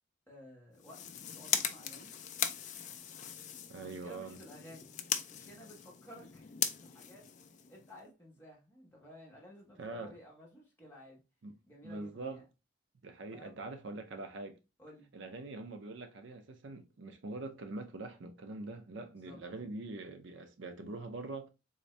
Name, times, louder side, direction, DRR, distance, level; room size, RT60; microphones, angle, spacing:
voice 1, 0.3-1.0 1.3-2.1 3.8-4.9 5.3-6.5 6.8-7.3 7.7-11.2 11.7-12.4 13.3-13.6 14.8-15.1 19.2-19.4, left 1 dB, 10° left, 1.1 m, -54 dB
sound 1, 0.7-8.0, left 8 dB, 35° left, 0.4 m, -39 dB
voice 2, 3.7-4.4 9.8-10.2 11.4-11.5 11.8-12.4 13.0-14.6 15.1-21.5, right 2 dB, 65° right, 0.5 m, -43 dB
3.8 x 2.6 x 3.2 m
head